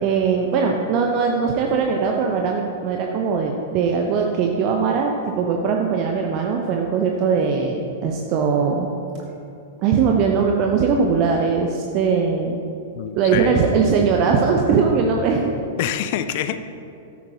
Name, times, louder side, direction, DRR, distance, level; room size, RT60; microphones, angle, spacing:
voice 1, 0.0-8.9 9.8-12.6 13.2-15.5, right 5 dB, 40° right, 2 dB, 0.7 m, -20 dB
voice 2, 12.9-13.7 15.8-16.6, left 10 dB, 45° left, 11 dB, 0.4 m, -26 dB
13.5 x 8.6 x 2.8 m, 2.7 s
figure-of-eight pair, 100°, 0 cm